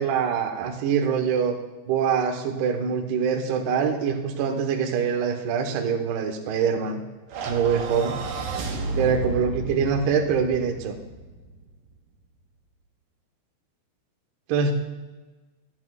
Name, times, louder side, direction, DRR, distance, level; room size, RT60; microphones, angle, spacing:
voice 1, 0.0-1.6 1.9-7.0 7.5-8.2 9.0-11.0 14.5-14.7, right 6 dB, 70° right, 4 dB, 2.6 m, -24 dB
sound 1, 7.3-11.7, right 3 dB, 90° right, 1.9 m, -32 dB
23.5 x 8.6 x 2.4 m, 1.2 s
omnidirectional pair, 6.0 m